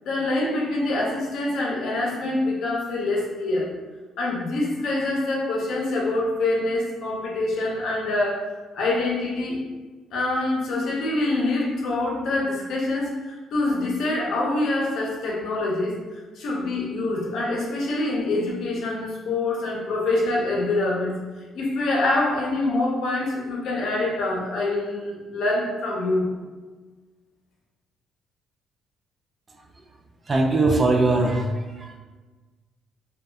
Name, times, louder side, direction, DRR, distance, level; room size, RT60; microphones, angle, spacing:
voice 1, 0.1-3.7 4.2-8.4 8.7-9.6 10.1-21.2 21.5-26.3, left 2 dB, 70° left, -2 dB, 0.6 m, -25 dB
voice 2, 30.3-32.0, right 2 dB, 30° right, 1 dB, 0.4 m, -21 dB
2.7 x 2.2 x 2.2 m, 1.3 s
cardioid pair, 100°, 0 cm